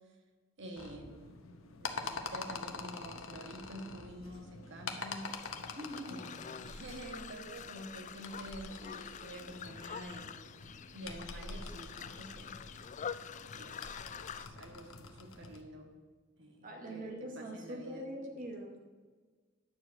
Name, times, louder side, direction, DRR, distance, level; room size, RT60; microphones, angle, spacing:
voice 1, 0.6-1.4 1.8-5.3 6.1-10.3 10.9-12.6 13.5-15.9 16.4-18.1, right 1 dB, 65° right, 3 dB, 1.5 m, -48 dB
sound 1, 0.8-15.6, left 4 dB, 70° left, 1.0 m, -46 dB
sound 2, 5.2-14.5, left 7 dB, 35° left, 0.4 m, -46 dB
voice 2, 5.7-6.2 16.6-18.8, right 1 dB, 40° right, 1 dB, 1.4 m, -43 dB
10.0 x 4.9 x 7.5 m, 1.4 s
head